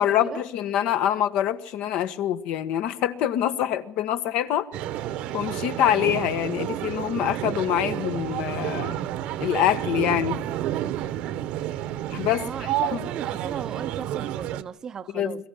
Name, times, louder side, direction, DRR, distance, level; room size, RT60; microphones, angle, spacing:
voice 1, 0.0-4.7 5.3-9.0 9.4-10.4 12.1-12.5 12.9-13.0 15.1-15.5, left 11 dB, 55° left, 1.4 m, -25 dB
sound 1, 4.7-14.6, right 12 dB, 55° right, 1.1 m, -30 dB
voice 2, 12.4-15.5, right 7 dB, 25° right, 0.8 m, -37 dB
22.5 x 14.5 x 10.0 m
cardioid pair, 155°, 2 cm